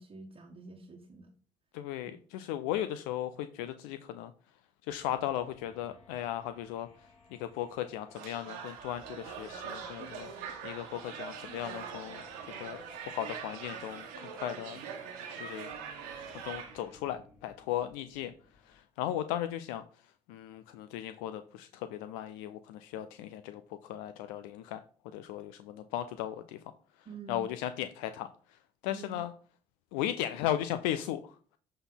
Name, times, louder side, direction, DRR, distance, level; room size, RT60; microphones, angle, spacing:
voice 1, 0.0-1.3 2.0-2.1 27.0-27.5 28.9-29.2, right 3 dB, 35° right, 0 dB, 1.3 m, -47 dB
voice 2, 1.7-4.3 4.9-6.9 7.3-10.3 10.6-12.2 12.6-12.8 13.1-14.8 15.4-15.7 16.3-18.3 18.7-19.8 20.3-24.8 25.1-26.6 27.3-28.3 28.8-29.3 29.9-31.3, left 12 dB, 70° left, 11 dB, 0.5 m, -36 dB
sound 1, 4.8-18.8, left 3 dB, 45° left, 3.1 m, -60 dB
sound 2, 8.1-16.9, right 7 dB, 70° right, 1.5 m, -43 dB
7.7 x 4.2 x 3.9 m, 0.43 s
hypercardioid pair, 55°, 16 cm